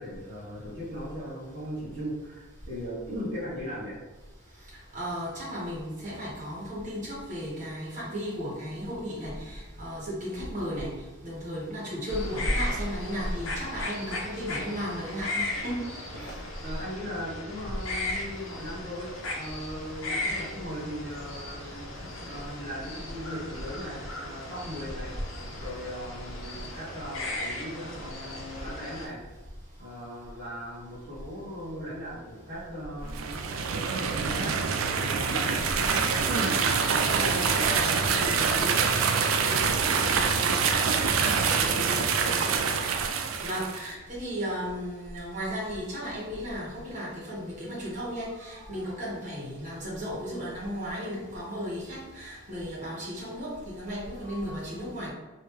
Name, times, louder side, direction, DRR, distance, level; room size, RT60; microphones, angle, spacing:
voice 1, 0.0-4.0 16.6-25.1 25.6-29.2 29.8-34.6 34.9-38.9 39.4-42.6, equal, 55° right, -10 dB, 1.0 m, -38 dB
voice 2, 4.9-10.9 11.2-15.7 16.1-16.3 43.4-55.1, equal, 40° right, -7 dB, 1.3 m, -35 dB
sound 1, 12.1-29.1, left 1 dB, 85° left, 0.7 m, -36 dB
sound 2, 33.1-43.9, right 5 dB, 80° right, 0.4 m, -25 dB
sound 3, 35.3-42.5, equal, 5° right, 1.1 m, -43 dB
3.3 x 2.7 x 3.1 m, 1.2 s
head